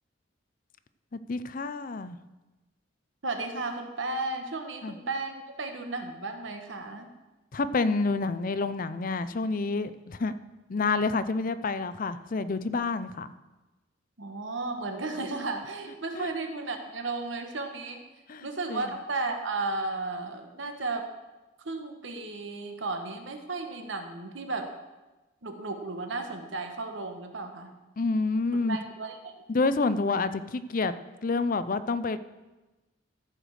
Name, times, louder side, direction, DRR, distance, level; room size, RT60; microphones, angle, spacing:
voice 1, 1.1-2.2 4.8-4.9 7.5-10.3 10.7-13.3 16.1-16.3 18.3-18.9 28.0-28.8 29.5-30.9 31.2-32.2, left 3 dB, 45° left, 13 dB, 0.5 m, -28 dB
voice 2, 3.2-7.1 14.2-18.0 18.4-21.1 21.6-24.7 25.4-27.8 28.7-29.3, right 3 dB, 80° right, 5 dB, 1.2 m, -34 dB
14.0 x 5.1 x 6.4 m, 1.1 s
head